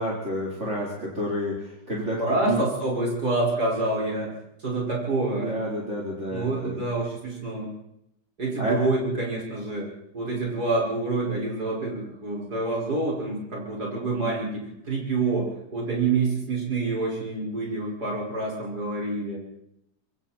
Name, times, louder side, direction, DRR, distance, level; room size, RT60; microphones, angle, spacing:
voice 1, 0.0-2.6 5.4-6.8 8.6-8.8, right 1 dB, 40° right, -4 dB, 4.6 m, -29 dB
voice 2, 2.2-4.3 4.6-5.5 6.3-7.7 8.4-9.9 10.1-19.4, right 3 dB, 60° right, -3 dB, 6.3 m, -27 dB
27.0 x 23.0 x 4.5 m, 0.77 s
omnidirectional pair, 1.9 m